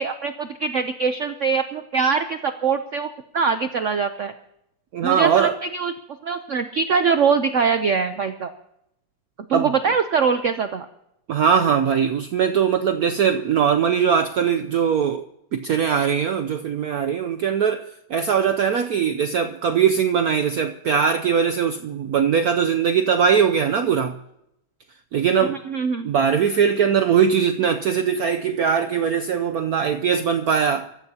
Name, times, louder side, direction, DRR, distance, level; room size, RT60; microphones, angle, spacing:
voice 1, 0.0-3.1 3.3-4.3 5.0-5.9 6.2-8.5 9.5-10.9 25.4-26.1, right 5 dB, 90° right, 0.6 m, -23 dB
voice 2, 4.9-5.6 9.5-9.7 11.3-15.2 15.5-24.2 25.1-25.6 26.0-30.9, right 7 dB, 65° right, 0.9 m, -21 dB
25.0 x 14.5 x 2.8 m
omnidirectional pair, 2.2 m